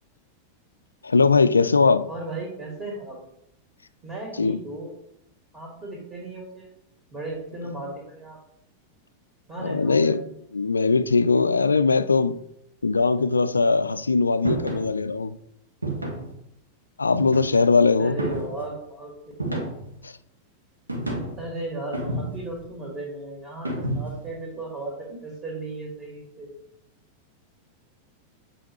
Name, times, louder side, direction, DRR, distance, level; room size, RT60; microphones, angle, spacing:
voice 1, 1.0-2.1 4.4-4.6 9.6-10.2 10.5-12.4 12.8-15.4 17.0-18.2 19.5-19.6 20.0-20.1, left 4 dB, 75° left, 0.3 m, -20 dB
voice 2, 2.1-3.2 4.0-4.9 5.5-6.7 7.1-8.4 9.5-10.2 18.0-19.1 21.2-26.5, right 2 dB, 20° right, 2.2 m, -35 dB
sound 1, 14.4-14.9 15.8-16.3 17.1-17.7 18.2-18.6 19.4-20.0 20.9-21.4 21.9-22.6 23.6-24.2, right 1 dB, 80° right, 1.2 m, -30 dB
7.9 x 5.6 x 3.1 m
figure-of-eight pair, 90°, 0 cm